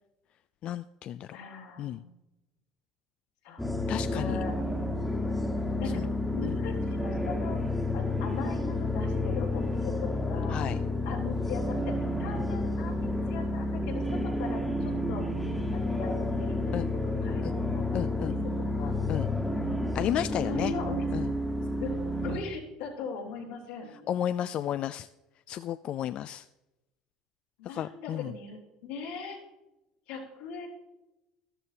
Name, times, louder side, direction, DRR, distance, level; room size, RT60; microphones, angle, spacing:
voice 1, 0.6-1.3 1.8-2.0 3.9-4.4 5.9-6.1 6.5-6.6 10.5-10.8 16.7-16.9 17.4-17.5 17.9-18.4 19.1-19.3 19.9-20.7 21.1-21.3 24.1-25.1 25.5-26.5 27.7-28.3, left 11 dB, 50° left, 12 dB, 0.3 m, -32 dB
voice 2, 1.3-2.1 3.4-3.7 4.1-4.5 5.7-7.6 7.9-10.7 11.1-15.2 15.7-19.0 20.4-21.1 21.8-22.0 22.2-24.1 27.6-29.4 30.1-30.7, left 5 dB, 85° left, -2 dB, 3.5 m, -40 dB
sound 1, 3.6-22.4, left 1 dB, 5° left, 1.3 m, -30 dB
13.5 x 12.5 x 2.8 m, 0.96 s
supercardioid pair, 105°, 2 cm